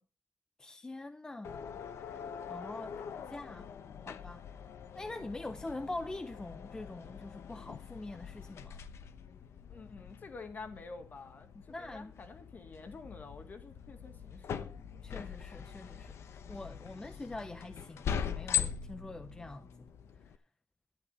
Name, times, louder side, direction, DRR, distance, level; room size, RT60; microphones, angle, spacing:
voice 1, 0.6-1.6 2.0-3.7 4.1-4.4 4.9-8.8 11.5-12.1 15.0-19.7, left 2 dB, 15° left, 0.6 m, -44 dB
sound 1, 1.4-20.4, left 8 dB, 75° left, 0.9 m, -42 dB
voice 2, 9.7-14.7, left 4 dB, 40° left, 2.0 m, -48 dB
sound 2, 13.0-19.9, left 5 dB, 55° left, 1.9 m, -55 dB
12.0 x 10.5 x 4.2 m
wide cardioid pair, 140°, 5 cm